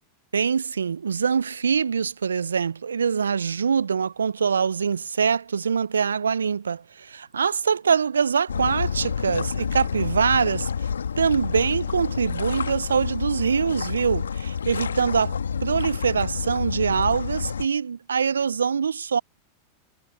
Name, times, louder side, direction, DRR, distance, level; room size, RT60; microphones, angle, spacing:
voice 1, 0.3-10.7 11.2-19.2, right 6 dB, 80° right, 0.3 m, -24 dB
sound 1, 8.5-17.7, left 6 dB, 80° left, 1.7 m, -29 dB
hypercardioid pair, 95°, 0 cm